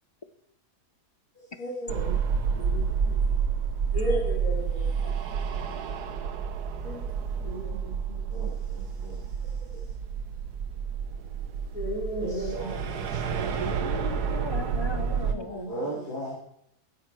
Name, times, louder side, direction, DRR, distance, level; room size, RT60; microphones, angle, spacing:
voice 1, 1.6-2.2 2.5-3.1 3.9-5.1 6.8-7.1 7.4-8.2 11.7-12.7 15.3-16.0, equal, 60° left, -3 dB, 4.0 m, -35 dB
sound 1, 1.9-15.3, right 6 dB, 80° right, 1.6 m, -29 dB
voice 2, 8.3-9.2 12.2-13.6 15.7-16.3, right 1 dB, 80° left, -8 dB, 4.8 m, -37 dB
voice 3, 13.6-16.0, left 4 dB, 45° left, 11 dB, 0.3 m, -38 dB
16.0 x 9.7 x 4.6 m, 0.73 s
omnidirectional pair, 1.7 m